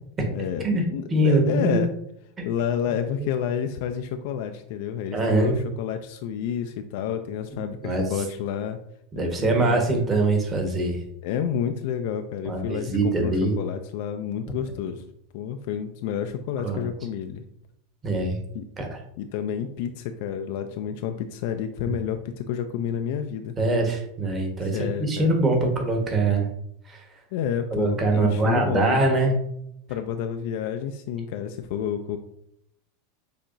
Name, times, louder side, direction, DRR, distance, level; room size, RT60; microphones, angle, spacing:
voice 1, 0.3-1.9 2.4-8.8 9.2-10.0 11.2-15.0 15.3-17.4 18.5-18.7 19.2-23.6 24.6-25.4 27.3-29.0 29.9-32.2, left 8 dB, 60° left, 7 dB, 0.3 m, -30 dB
voice 2, 1.1-1.8 2.4-2.5 5.1-5.6 7.8-8.0 9.1-11.0 12.4-13.5 16.6-16.9 18.0-18.4 18.8-19.0 23.6-26.5 26.9-27.0 27.7-29.3, right 2 dB, 25° right, 2 dB, 1.3 m, -23 dB
6.6 x 2.9 x 2.6 m, 0.75 s
hypercardioid pair, 90°, 0 cm